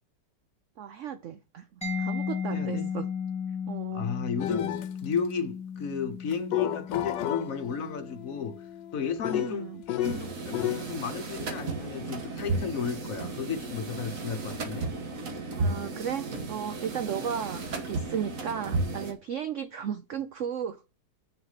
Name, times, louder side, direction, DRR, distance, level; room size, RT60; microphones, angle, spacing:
voice 1, 0.8-3.1 3.7-4.1 9.3-9.8 15.6-20.8, right 8 dB, 75° right, 0.7 m, -35 dB
Mallet percussion, 1.8-9.3, left 6 dB, 5° left, 2.0 m, -35 dB
voice 2, 2.5-2.9 3.9-4.7 5.0-8.5 8.9-14.9, left 6 dB, 55° left, 1.2 m, -33 dB
sound 1, 4.4-4.9 6.3-10.9, left 12 dB, 80° left, 1.4 m, -33 dB
sound 2, 10.0-19.1, right 3 dB, 50° right, 1.7 m, -34 dB
7.3 x 6.3 x 5.6 m
omnidirectional pair, 1.9 m